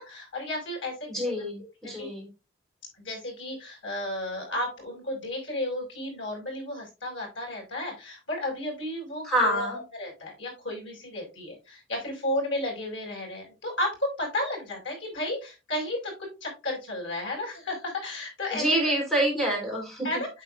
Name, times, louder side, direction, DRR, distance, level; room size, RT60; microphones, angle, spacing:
voice 1, 0.0-1.1 1.6-1.7 2.0-2.1 3.0-9.7 10.0-16.1 16.4-18.9 20.0-20.3, left 1 dB, 85° left, 0 dB, 5.6 m, -33 dB
voice 2, 1.1-2.3 9.2-9.8 18.5-20.2, right 1 dB, ahead, -2 dB, 3.9 m, -27 dB
9.3 x 7.7 x 2.5 m, 0.27 s
head